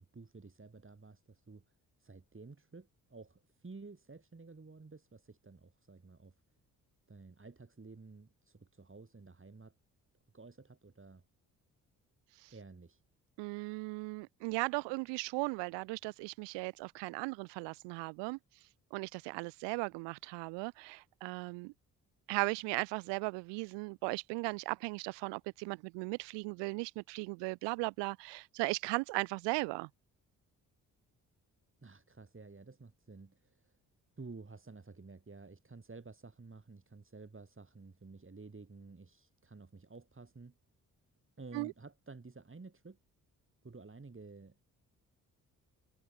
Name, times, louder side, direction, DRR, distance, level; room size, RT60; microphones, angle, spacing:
voice 1, 0.0-1.6 2.0-6.4 7.1-9.7 10.3-11.2 12.5-13.0 31.8-33.8 34.2-40.5 41.4-43.0 43.6-44.7, right 3 dB, 25° right, 5.4 m, -52 dB
voice 2, 13.4-18.4 18.9-21.7 22.3-29.9 41.5-41.7, right 27 dB, 70° right, 0.6 m, -37 dB
hypercardioid pair, 40°, 45 cm